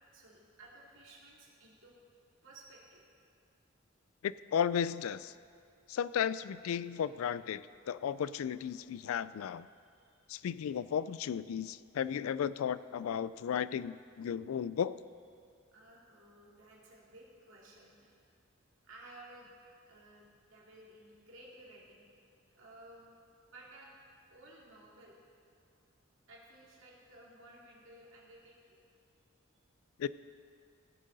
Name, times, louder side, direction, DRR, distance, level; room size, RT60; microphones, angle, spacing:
voice 1, 0.1-2.0 2.4-3.0 9.4-9.6 9.8-10.1 15.7-18.2 18.8-19.5 19.9-22.0 22.5-23.2 23.5-23.9 24.3-25.2 26.3-28.8, right 1 dB, 65° right, -4 dB, 2.5 m, -56 dB
voice 2, 4.2-5.3 5.9-9.7 10.3-15.0 30.0-30.1, left 8 dB, 85° left, 17 dB, 0.3 m, -34 dB
17.0 x 7.4 x 4.0 m, 2.4 s
head